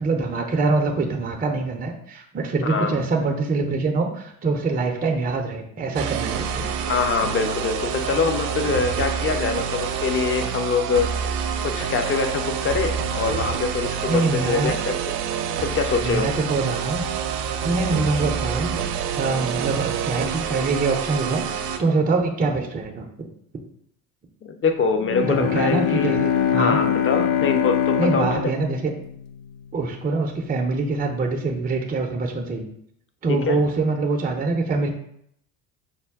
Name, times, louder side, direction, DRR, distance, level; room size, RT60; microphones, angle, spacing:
voice 1, 0.0-6.7 14.1-14.7 16.0-17.0 17.6-23.3 25.2-26.8 28.0-28.9 29.7-32.7 33.2-34.9, right 3 dB, 20° right, 2 dB, 0.5 m, -24 dB
voice 2, 2.6-3.0 6.9-11.1 11.6-15.0 15.6-16.3 24.4-26.2 26.6-28.5 33.3-33.6, left 5 dB, 25° left, 5 dB, 0.6 m, -24 dB
sound 1, 5.9-21.8, right 7 dB, 70° right, 0.6 m, -27 dB
Bowed string instrument, 25.0-29.8, left 10 dB, 70° left, 0.5 m, -24 dB
5.5 x 2.2 x 3.5 m, 0.71 s
hypercardioid pair, 65°, 49 cm